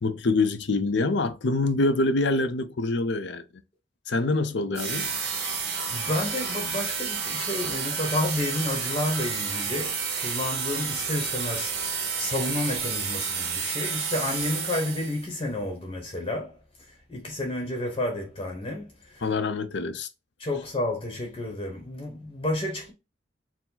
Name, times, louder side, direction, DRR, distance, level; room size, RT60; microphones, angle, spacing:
voice 1, 0.0-3.4 4.1-5.1 19.2-20.1, left 2 dB, 60° left, 0.5 m, -25 dB
sound 1, 4.7-15.3, right 5 dB, 55° right, 1.3 m, -30 dB
voice 2, 5.9-16.6 17.1-19.2 20.4-22.9, left 1 dB, 25° left, 0.8 m, -31 dB
4.6 x 2.0 x 3.8 m
head